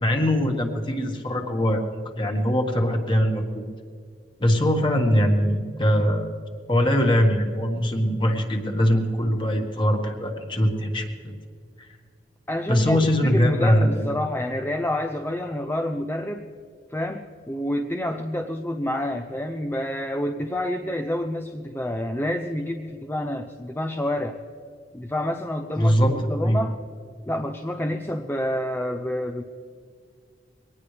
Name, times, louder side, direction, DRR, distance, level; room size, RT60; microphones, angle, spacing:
voice 1, 0.0-3.6 4.4-6.3 6.7-11.4 11.8-11.9 12.7-14.1 25.8-26.6, equal, 30° left, 3 dB, 1.7 m, -22 dB
voice 2, 12.5-16.5 16.9-24.4 24.9-26.8 27.3-29.4, left 1 dB, 10° left, 6 dB, 0.6 m, -28 dB
22.5 x 18.5 x 3.4 m, 2.1 s
head